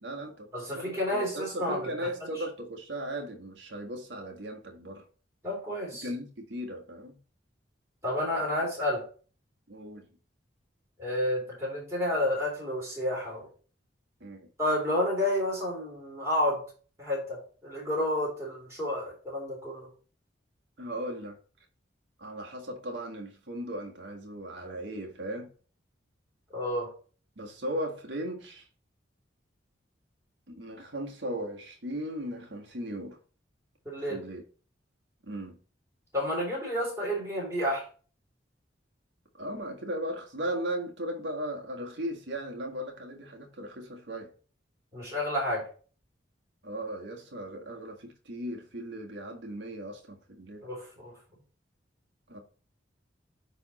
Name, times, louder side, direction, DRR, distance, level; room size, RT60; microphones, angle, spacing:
voice 1, 0.0-5.0 6.0-7.2 8.4-8.5 9.7-10.0 14.2-14.5 20.8-21.4 22.2-25.5 27.4-28.7 30.5-33.2 34.1-34.4 35.2-35.6 39.4-44.3 46.6-50.6 52.3-52.4, right 1 dB, 70° right, 1.6 m, -37 dB
voice 2, 0.5-1.9 2.2-2.3 5.4-6.1 8.0-9.0 11.0-13.5 14.6-16.6 17.0-19.9 26.5-26.9 33.9-34.2 36.1-37.8 44.9-45.6 50.6-51.1, left 1 dB, 15° right, 3.6 m, -30 dB
9.7 x 3.6 x 4.2 m
head